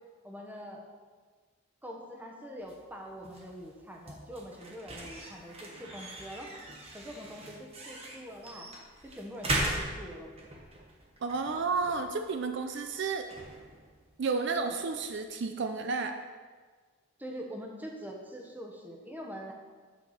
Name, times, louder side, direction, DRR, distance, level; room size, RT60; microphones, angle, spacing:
voice 1, 0.2-0.8 1.8-6.5 6.9-8.7 9.0-10.3 17.2-19.5, equal, 10° right, 0 dB, 0.9 m, -44 dB
sound 1, 2.6-15.3, right 1 dB, 30° right, 1.1 m, -40 dB
voice 2, 11.2-13.3 14.2-16.2, right 4 dB, 55° right, 7 dB, 0.4 m, -31 dB
9.0 x 6.5 x 4.2 m, 1.5 s
head